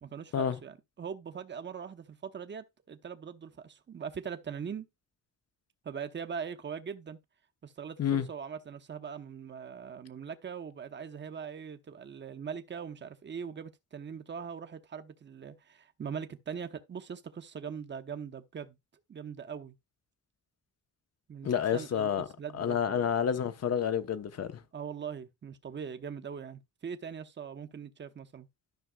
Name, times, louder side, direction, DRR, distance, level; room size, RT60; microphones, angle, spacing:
voice 1, 0.0-4.9 5.8-7.2 7.6-18.8 19.1-19.8 21.3-22.1 22.4-23.1 24.7-28.5, right 7 dB, 35° right, 0.9 m, -41 dB
voice 2, 21.4-22.2 22.6-24.6, left 8 dB, 55° left, 1.0 m, -29 dB
13.0 x 5.9 x 2.3 m
cardioid pair, 125°, 31 cm